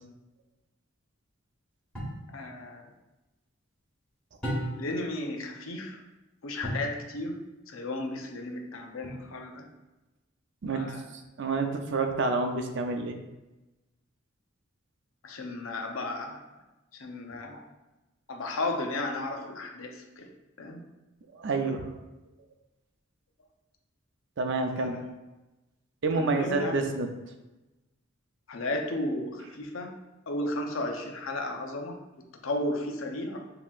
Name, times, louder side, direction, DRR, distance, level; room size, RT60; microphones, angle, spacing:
sound 1, 1.9-2.3 4.4-5.0 6.6-7.0 9.0-9.6, equal, 5° left, 1.5 m, -34 dB
voice 1, 2.3-2.9 4.8-6.0 6.4-9.7 10.6-11.0 15.2-16.4 16.9-17.6 18.3-20.3 20.6-20.8 24.7-25.1 26.1-26.7 28.5-30.0 30.3-33.5, left 2 dB, 85° left, 3 dB, 0.7 m, -34 dB
voice 2, 10.6-13.2 21.3-21.9 24.4-25.0 26.0-27.1, right 3 dB, 65° right, 5 dB, 0.5 m, -29 dB
7.3 x 2.9 x 2.4 m, 1.0 s
head